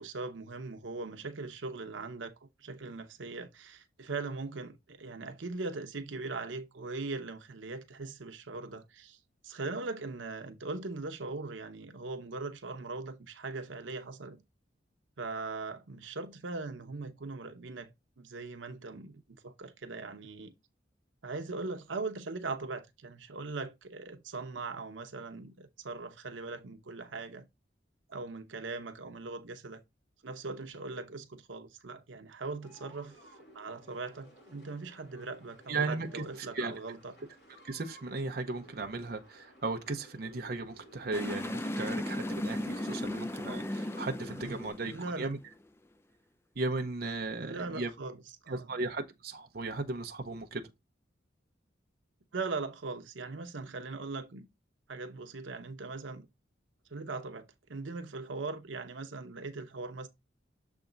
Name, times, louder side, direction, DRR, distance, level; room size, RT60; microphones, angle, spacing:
voice 1, 0.0-14.4 15.2-17.9 18.2-20.5 21.2-27.5 28.1-29.8 30.2-33.2 33.5-37.2 44.4-44.6 44.9-45.3 47.4-48.7 52.3-54.5 54.9-56.3 56.9-60.1, right 3 dB, 90° right, 0.8 m, -40 dB
sound 1, 32.6-44.7, equal, 60° left, 2.5 m, -57 dB
voice 2, 35.7-36.1 36.5-36.7 37.6-45.4 46.6-47.9 48.5-50.6, right 3 dB, 55° right, 0.7 m, -36 dB
sound 2, 41.1-45.5, left 1 dB, 15° left, 0.4 m, -36 dB
7.0 x 3.5 x 3.8 m
head